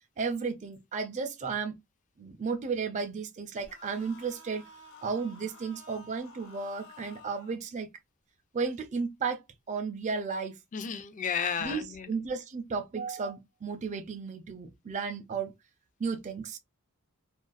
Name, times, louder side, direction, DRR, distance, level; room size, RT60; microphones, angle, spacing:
voice 1, 0.2-1.7 2.2-4.6 5.0-7.9 8.5-10.6 11.6-15.5 16.0-16.6, right 5 dB, 35° right, 0.4 m, -34 dB
sound 1, 3.6-7.6, left 2 dB, 55° left, 0.8 m, -52 dB
voice 2, 10.7-12.1, left 7 dB, 35° left, 0.4 m, -33 dB
2.5 x 2.2 x 2.3 m
head